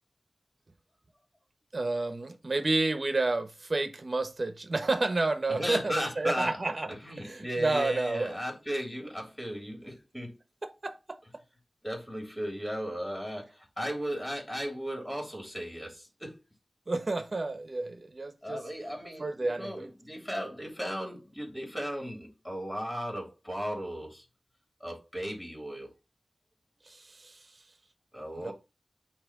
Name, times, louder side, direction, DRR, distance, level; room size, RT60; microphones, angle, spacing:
voice 1, 1.7-6.9 7.2-8.3 10.6-11.2 16.9-18.6 19.2-19.9 26.9-27.4 28.4-28.5, right 2 dB, 55° right, 1.2 m, -30 dB
voice 2, 5.5-6.5 7.0-10.4 11.8-16.4 18.4-24.2 24.8-25.9 28.1-28.5, equal, 10° left, 3.0 m, -36 dB
8.7 x 3.0 x 6.0 m
wide cardioid pair, 50°, 0 cm